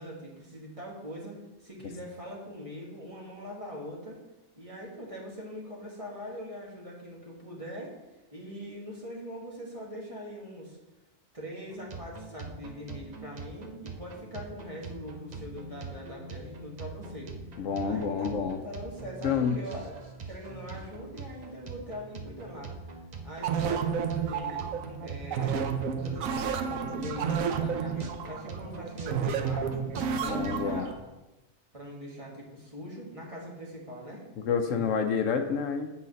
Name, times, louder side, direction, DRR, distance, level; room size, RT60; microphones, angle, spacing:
voice 1, 0.0-4.2 4.6-7.9 8.3-10.8 11.3-17.3 17.8-18.4 18.6-19.9 20.2-22.7 23.2-24.6 25.0-25.7 26.0-26.3 26.6-29.7 30.2-31.1 31.7-34.2 34.7-34.8, equal, 25° right, -3 dB, 1.6 m, -42 dB
sound 1, 11.7-30.8, right 4 dB, 40° right, 0.7 m, -43 dB
voice 2, 17.6-18.6 19.2-19.6 30.3-30.9 34.4-35.9, left 6 dB, 75° left, 6 dB, 1.0 m, -28 dB
sound 2, 23.4-30.9, right 6 dB, 85° right, 1.0 m, -31 dB
8.5 x 3.9 x 5.2 m, 1.0 s
omnidirectional pair, 1.4 m